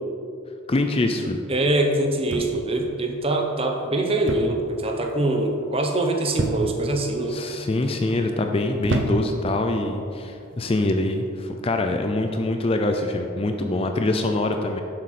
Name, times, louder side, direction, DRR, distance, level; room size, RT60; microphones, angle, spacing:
voice 1, 0.7-1.4 7.3-14.8, left 2 dB, 25° left, 5 dB, 0.4 m, -24 dB
voice 2, 1.5-7.4, right 2 dB, 25° right, 3 dB, 0.9 m, -23 dB
sound 1, 2.3-2.8 4.3-4.7 4.9-5.4 6.4-6.9 7.6-8.0 8.8-9.5 10.4-10.7, right 2 dB, 55° right, 0.8 m, -28 dB
11.5 x 7.4 x 4.3 m, 2.6 s
head